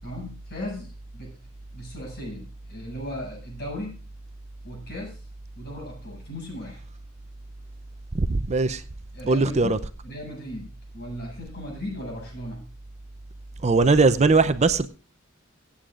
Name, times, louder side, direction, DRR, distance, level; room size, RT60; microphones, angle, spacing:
voice 1, 0.0-1.4 1.7-4.0 4.6-5.2 5.6-6.8 9.1-12.6, left 1 dB, 55° left, 6.8 m, -37 dB
voice 2, 8.1-8.8 9.3-9.8 13.6-14.9, right 3 dB, 35° right, 0.6 m, -20 dB
24.0 x 8.5 x 2.5 m
head